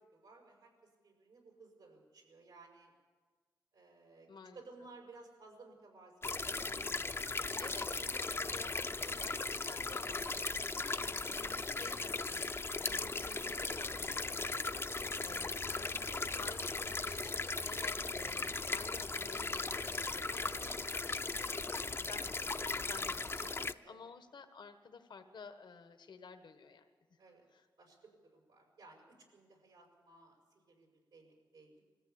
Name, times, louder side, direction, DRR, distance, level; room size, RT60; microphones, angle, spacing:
voice 1, 0.0-2.9 3.7-4.3 4.5-7.0 7.5-8.1 8.4-8.7 14.9-15.1 20.6-21.0 23.4-24.0 27.2-27.5 27.8-31.8, right 3 dB, 85° right, 1 dB, 6.0 m, -58 dB
voice 2, 4.3-4.6 7.6-14.7 15.2-16.0 16.4-20.8 21.2-27.2 27.5-27.6, left 5 dB, 75° left, 7 dB, 1.3 m, -53 dB
sound 1, 6.2-23.7, left 3 dB, 30° left, 0.6 m, -38 dB
21.0 x 15.0 x 8.7 m, 1.5 s
cardioid pair, 60°, 8 cm